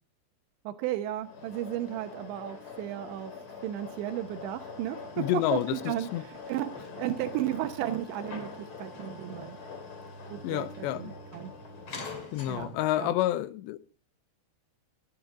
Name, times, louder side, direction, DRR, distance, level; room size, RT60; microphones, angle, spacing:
voice 1, 0.6-3.3 3.6-6.7 7.0-8.5 8.8-9.6 10.3-11.5 12.5-13.2, right 12 dB, 90° right, 3.2 m, -34 dB
sound 1, 1.2-12.9, left 4 dB, 35° left, 2.7 m, -44 dB
voice 2, 5.2-6.2 10.4-11.1 12.3-13.8, left 14 dB, 85° left, 3.0 m, -29 dB
18.5 x 11.0 x 3.7 m
omnidirectional pair, 5.0 m